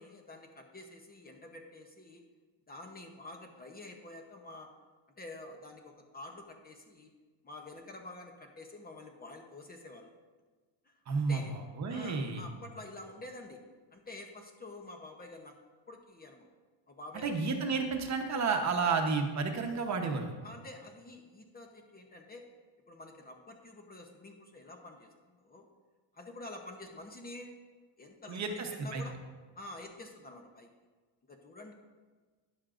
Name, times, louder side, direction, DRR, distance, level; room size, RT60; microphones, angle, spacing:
voice 1, 0.0-2.2 2.7-4.7 5.2-7.1 7.4-10.1 10.8-10.9 11.3-11.5 11.9-13.6 13.9-15.6 15.9-16.5 16.9-17.5 20.4-22.5 22.9-25.7 26.1-27.5 28.0-29.2 29.5-30.7 31.3-31.7, left 2 dB, 20° left, 3 dB, 0.8 m, -48 dB
voice 2, 11.1-11.4 11.8-12.4 17.2-20.3 28.3-29.0, right 4 dB, 35° right, 4 dB, 1.0 m, -31 dB
12.5 x 10.5 x 2.5 m, 1.4 s
cardioid pair, 165°, 47 cm